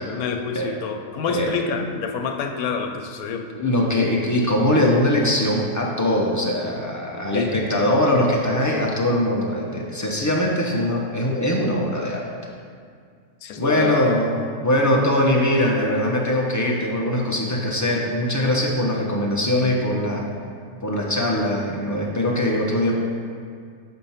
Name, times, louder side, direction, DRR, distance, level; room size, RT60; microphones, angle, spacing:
voice 1, 0.0-3.4 7.3-7.5 13.4-14.2, left 6 dB, 80° left, 4 dB, 1.1 m, -27 dB
voice 2, 3.5-12.3 13.6-14.3 14.6-20.3 20.8-23.0, left 1 dB, 30° left, -2 dB, 0.3 m, -21 dB
6.3 x 4.4 x 5.6 m, 2.1 s
omnidirectional pair, 1.5 m